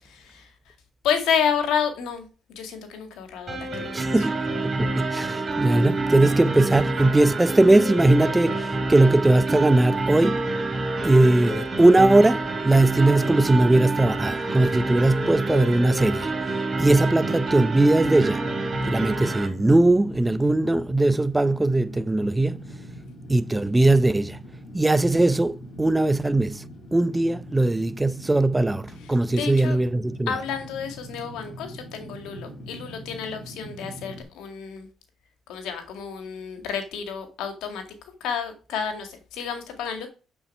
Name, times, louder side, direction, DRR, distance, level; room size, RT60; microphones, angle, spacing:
voice 1, 0.1-0.5 1.0-2.2 2.6-4.1 29.4-29.8 30.3-34.9 35.5-37.8 38.2-40.1, left 7 dB, 90° left, 1.9 m, -30 dB
sound 1, 3.5-19.5, right 2 dB, 35° right, 3.8 m, -27 dB
voice 2, 3.9-10.4 11.0-16.3 16.8-18.5 18.8-22.7 23.3-24.4 24.7-26.7 26.9-30.3, right 2 dB, 15° right, 0.7 m, -20 dB
Fire, 16.8-34.2, equal, 60° left, 3.5 m, -42 dB
7.0 x 6.9 x 5.4 m
cardioid pair, 90°, 0 cm